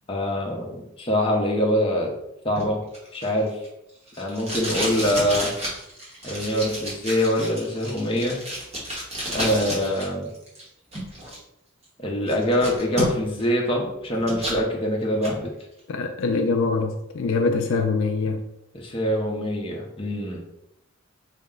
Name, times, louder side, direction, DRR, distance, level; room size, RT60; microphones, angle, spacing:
voice 1, 0.1-2.1 2.4-2.8 3.1-3.6 4.2-5.5 6.2-8.4 9.3-10.3 12.0-15.5 18.7-20.4, equal, 25° left, -1 dB, 0.6 m, -24 dB
Packing tape duct tape, 2.6-10.1 10.3-11.4 11.8-11.9 12.3-13.4 13.8-14.6 15.0-15.4, equal, 30° right, 1.1 m, -31 dB
voice 2, 15.9-18.4, left 3 dB, 65° left, 5 dB, 0.3 m, -24 dB
4.1 x 2.1 x 3.6 m, 0.84 s
head